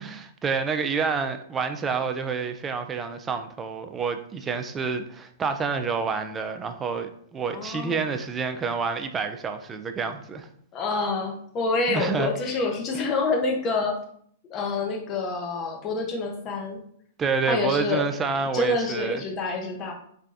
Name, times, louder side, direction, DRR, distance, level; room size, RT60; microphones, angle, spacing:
voice 1, 0.0-10.5 11.9-12.3 17.2-19.2, right 5 dB, 20° right, 7 dB, 0.3 m, -28 dB
voice 2, 7.5-8.1 10.7-14.0 14.4-16.8 17.4-18.1 18.5-19.9, left 3 dB, 30° left, 2 dB, 0.8 m, -27 dB
3.3 x 3.3 x 2.6 m, 0.63 s
hypercardioid pair, 130°, 0 cm